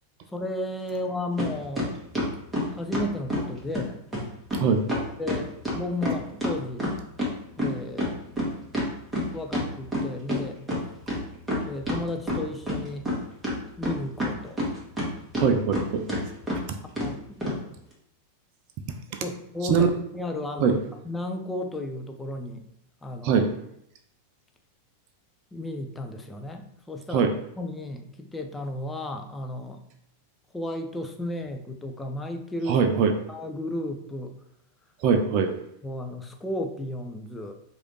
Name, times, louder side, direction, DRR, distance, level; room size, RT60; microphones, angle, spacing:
voice 1, 0.3-2.0 2.7-4.0 5.2-6.9 7.6-8.2 9.3-10.6 11.6-13.1 13.8-14.7 15.3-15.6 17.0-17.4 19.2-20.8 21.1-22.6 23.0-23.4 25.5-27.3 27.6-29.8 30.5-32.8 33.3-34.3 35.8-37.5, left 1 dB, 10° left, 5 dB, 0.5 m, -33 dB
sound 1, 1.4-1.5 1.8-3.5 3.7-3.8 4.1-4.2 4.5-4.6 4.9-7.3 7.6-10.4 10.7-10.8 11.1-12.0 12.3-13.2 13.4-15.1 15.3-15.8 16.1-16.2 16.5-16.6 17.0-17.1 17.4-17.6, equal, 10° right, 1.4 m, -27 dB
voice 2, 15.4-16.0 16.7-16.8 19.1-19.2 19.6-19.9 20.6-20.8 23.2-23.5 27.1-27.3 32.7-33.1 35.0-35.5, right 6 dB, 40° right, 6 dB, 0.4 m, -22 dB
4.7 x 2.6 x 3.1 m, 0.75 s
figure-of-eight pair, 90°, 0 cm